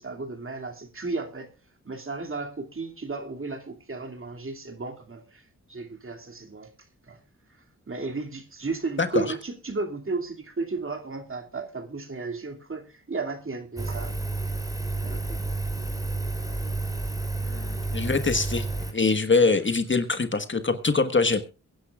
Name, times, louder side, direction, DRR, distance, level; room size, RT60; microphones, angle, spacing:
voice 1, 0.0-1.5 1.8-6.7 7.0-7.2 7.5-14.1 15.0-15.4, right 3 dB, 40° right, 2.4 m, -34 dB
Engine, 13.8-18.9, right 2 dB, 10° right, 3.2 m, -30 dB
voice 2, 17.4-18.7 18.9-21.4, left 4 dB, 35° left, 1.4 m, -23 dB
22.5 x 10.0 x 2.4 m
cardioid pair, 65°, 32 cm